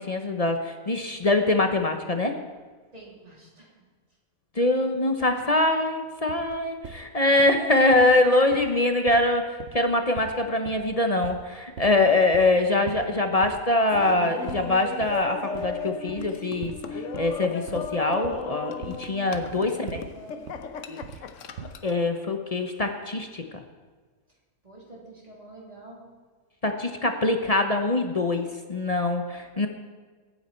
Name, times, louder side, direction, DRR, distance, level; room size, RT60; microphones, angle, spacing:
voice 1, 0.0-2.3 4.5-20.0 20.9-21.0 21.8-23.6 26.6-29.7, left 2 dB, 30° left, 5 dB, 0.8 m, -24 dB
voice 2, 2.9-3.7 19.5-20.5 24.6-26.0, right 1 dB, 25° right, -3 dB, 3.3 m, -47 dB
sound 1, 6.3-7.0 7.4-7.6 7.9-8.2 8.5-8.8 9.1-10.9 11.2-11.5 11.8-12.1 12.3-12.6 12.9-13.2 13.4-13.7 13.9-14.2 14.5-15.3 15.5-15.8 16.1-16.3 16.6-16.9 17.1-20.2 20.5-21.3 21.6-21.9, right 7 dB, 60° right, 0.9 m, -41 dB
Laughter, 13.9-22.0, left 5 dB, 60° left, 1.1 m, -36 dB
22.0 x 9.2 x 4.4 m, 1.4 s
omnidirectional pair, 1.6 m